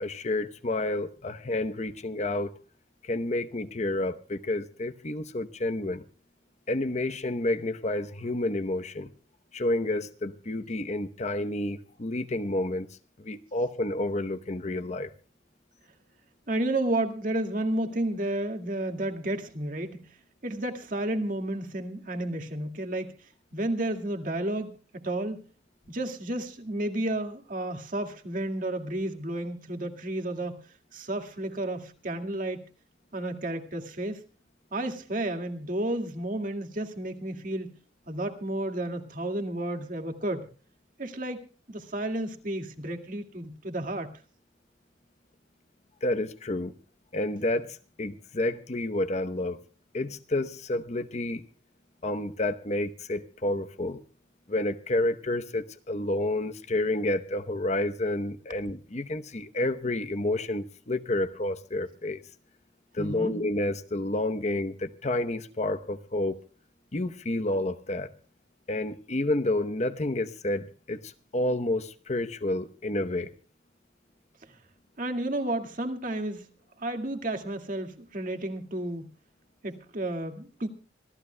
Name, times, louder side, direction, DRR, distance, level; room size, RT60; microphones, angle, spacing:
voice 1, 0.0-2.5 3.0-6.0 6.7-9.1 9.5-12.9 13.2-15.1 46.0-46.7 47.1-49.6 49.9-51.4 52.0-54.0 54.5-62.2 62.9-66.4 66.9-68.1 68.7-73.3, left 1 dB, 40° left, 0.9 m, -30 dB
voice 2, 16.5-20.2 20.4-23.1 23.5-25.4 25.9-30.7 30.9-32.6 33.1-34.2 34.7-37.7 38.1-40.5 41.0-44.1 63.0-63.3 75.0-76.5 76.8-79.1 79.6-80.7, right 1 dB, 50° right, 2.1 m, -32 dB
26.0 x 15.0 x 2.2 m
head